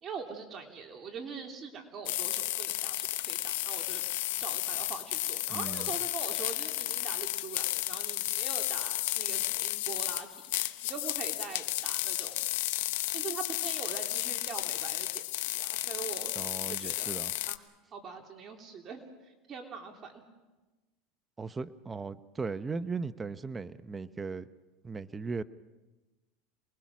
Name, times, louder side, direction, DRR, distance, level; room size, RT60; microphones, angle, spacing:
voice 1, 0.0-4.0 4.4-12.5 13.1-16.3 16.8-17.1 17.5-17.6 17.9-19.0 19.5-20.2, right 6 dB, 35° right, 2 dB, 3.2 m, -43 dB
sound 1, 2.1-17.6, left 17 dB, 80° left, 0.9 m, -33 dB
voice 2, 5.5-5.9 16.4-17.3 21.4-24.5 24.8-25.4, right 4 dB, 20° right, 13 dB, 0.8 m, -37 dB
28.0 x 21.0 x 6.2 m, 1.1 s
supercardioid pair, 120°, 0 cm